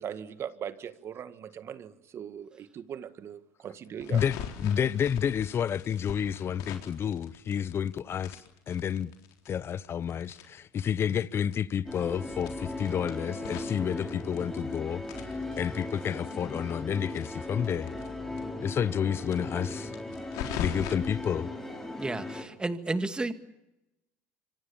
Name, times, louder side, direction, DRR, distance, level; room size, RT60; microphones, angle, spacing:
voice 1, 0.0-4.2, right 8 dB, 45° right, 1.7 m, -40 dB
sound 1, 4.0-7.9 8.2-11.2 11.5-11.6 11.9-12.0 12.4-14.7 15.0-18.1 18.4-18.5 18.7-18.8 19.2-20.9, left 9 dB, 70° left, 3.9 m, -41 dB
voice 2, 4.1-8.4 8.7-9.1 9.5-15.0 15.6-17.9 18.6-19.9 20.6-21.5, left 8 dB, 40° left, 1.1 m, -30 dB
sound 2, 11.9-22.4, left 2 dB, 5° left, 5.8 m, -38 dB
voice 3, 22.0-23.3, right 2 dB, 15° right, 2.1 m, -31 dB
26.5 x 24.5 x 7.1 m
supercardioid pair, 90°, 6 cm